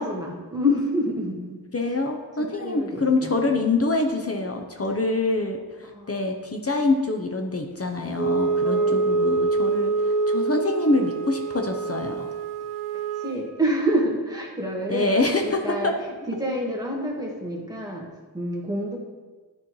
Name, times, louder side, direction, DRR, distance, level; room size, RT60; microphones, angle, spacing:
voice 1, 0.0-1.6 2.6-3.4 5.8-6.1 8.6-9.1 13.1-15.1 15.4-15.9 16.3-18.1 18.3-19.0, equal, 10° right, -2 dB, 1.5 m, -27 dB
voice 2, 1.7-12.3 14.9-15.9, left 2 dB, 35° left, 3 dB, 0.7 m, -25 dB
Wind instrument woodwind instrument, 8.1-13.4, right 4 dB, 50° right, 1.1 m, -25 dB
11.0 x 4.4 x 3.1 m, 1.3 s
wide cardioid pair, 95°, 42 cm